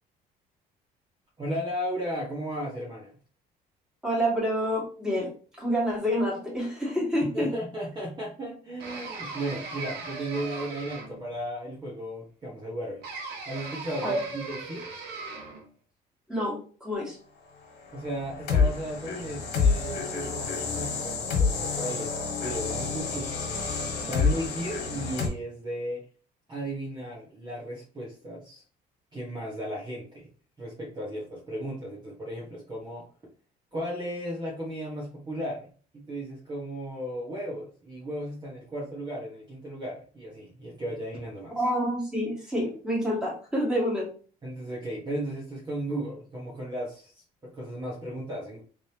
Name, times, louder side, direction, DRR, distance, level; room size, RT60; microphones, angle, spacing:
voice 1, 1.4-3.1 7.3-13.0 13.4-14.8 17.9-23.5 24.1-26.0 26.5-28.6 29.1-30.3 30.6-33.0 33.7-35.7 35.9-41.6 44.4-47.1 47.4-48.6, right 1 dB, 25° right, -5 dB, 1.5 m, -35 dB
voice 2, 4.0-5.3 5.6-7.5 14.0-14.2 16.3-17.2 41.6-44.1, equal, 5° right, -5 dB, 2.1 m, -28 dB
sound 1, 8.8-11.3 13.0-15.7, right 3 dB, 75° right, 1.2 m, -39 dB
sound 2, 17.9-25.3, left 5 dB, 85° left, 1.6 m, -28 dB
3.8 x 3.3 x 2.9 m, 0.41 s
cardioid pair, 110°, 17 cm